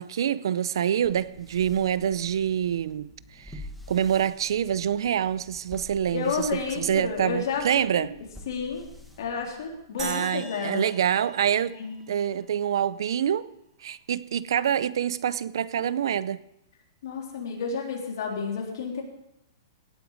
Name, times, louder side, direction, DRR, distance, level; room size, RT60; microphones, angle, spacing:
voice 1, 0.0-3.1 3.5-3.6 3.9-6.5 6.8-8.1 10.0-11.7 12.1-13.5 13.8-16.4, right 9 dB, 70° right, 0.6 m, -26 dB
sound 1, 1.0-10.0, left 1 dB, ahead, 1.2 m, -48 dB
voice 2, 6.1-8.1 8.5-8.9 9.2-10.9 11.7-12.0 17.0-19.0, left 5 dB, 60° left, 3.6 m, -31 dB
sound 2, 10.0-12.4, right 2 dB, 15° right, 4.0 m, -41 dB
17.5 x 9.1 x 4.9 m
hypercardioid pair, 160°, 2 cm